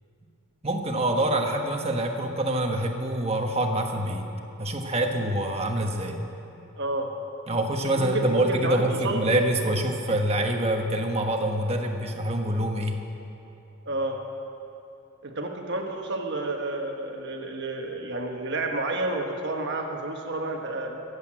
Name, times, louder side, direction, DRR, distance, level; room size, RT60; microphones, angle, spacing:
voice 1, 0.6-4.2 4.6-6.2 7.5-13.0, right 1 dB, 25° right, 3 dB, 1.2 m, -26 dB
voice 2, 6.8-7.1 7.9-9.4 13.8-14.2 15.2-21.0, right 2 dB, 50° right, 2 dB, 1.3 m, -30 dB
23.0 x 8.2 x 7.5 m, 3.0 s
head